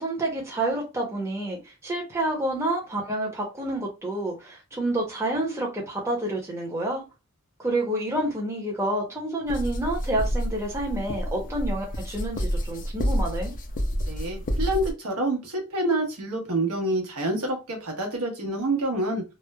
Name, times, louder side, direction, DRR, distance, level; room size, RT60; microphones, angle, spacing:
voice 1, 0.0-7.0 7.6-13.5, right 1 dB, 10° right, 0.7 m, -29 dB
sound 1, 9.5-14.9, equal, 35° left, 0.4 m, -29 dB
voice 2, 14.1-19.2, right 1 dB, 85° right, 1.0 m, -27 dB
3.0 x 2.0 x 2.2 m
head